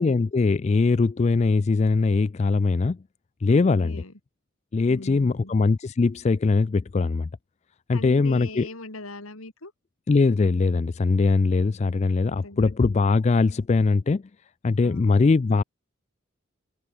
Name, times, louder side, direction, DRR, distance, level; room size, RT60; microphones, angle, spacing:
voice 1, 0.0-3.0 3.4-4.0 4.7-7.3 7.9-8.7 10.1-14.2 14.6-15.6, left 3 dB, 30° left, 0.3 m, -21 dB
voice 2, 3.7-4.1 4.9-5.5 7.9-9.7 12.3-12.7 14.8-15.1, left 2 dB, 85° left, 4.2 m, -40 dB
open air
head